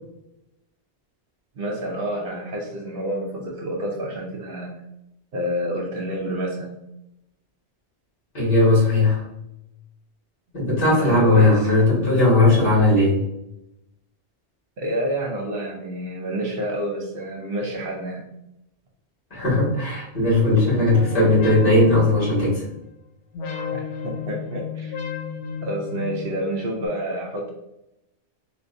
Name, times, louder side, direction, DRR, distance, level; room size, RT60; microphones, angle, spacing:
voice 1, 1.6-4.7 5.3-6.8 11.0-11.7 14.8-18.2 23.7-24.9 25.6-27.5, right 1 dB, 60° right, 0 dB, 0.8 m, -29 dB
voice 2, 8.3-9.2 10.5-13.2 19.3-22.6, left 2 dB, 50° left, -7 dB, 1.7 m, -18 dB
sound 1, 20.9-22.9 23.3-26.9, left 6 dB, 90° left, 0.9 m, -33 dB
3.9 x 2.2 x 2.5 m, 0.84 s
omnidirectional pair, 1.1 m